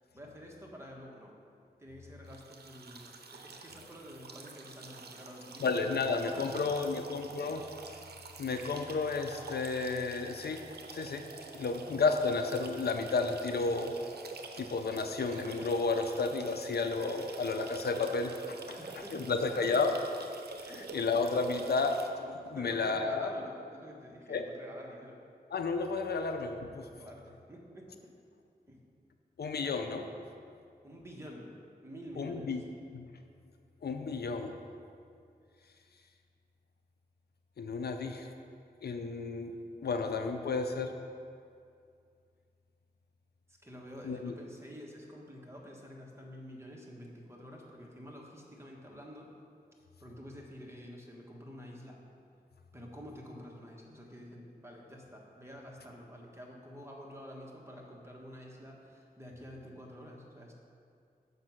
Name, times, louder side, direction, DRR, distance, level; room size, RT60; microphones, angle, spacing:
voice 1, 0.1-1.3 1.8-7.0 18.8-19.6 20.6-21.0 22.5-25.2 27.0-28.1 28.7-28.8 30.8-31.6 31.8-32.5 43.5-49.3 50.0-52.0 52.7-60.5, equal, 15° right, -2 dB, 1.4 m, -48 dB
sound 1, 2.3-22.1, right 4 dB, 75° right, 0.6 m, -47 dB
voice 2, 5.6-7.6 8.4-10.6 10.9-11.2 11.5-13.9 14.6-19.9 20.9-23.3 24.3-24.5 25.5-26.8 29.4-30.1 32.2-32.6 32.9-33.1 33.8-34.5 37.6-38.3 38.8-39.5 39.8-41.0 44.0-44.3, left 4 dB, 75° left, 6 dB, 0.5 m, -32 dB
6.5 x 5.4 x 6.1 m, 2.3 s
cardioid pair, 55°, 17 cm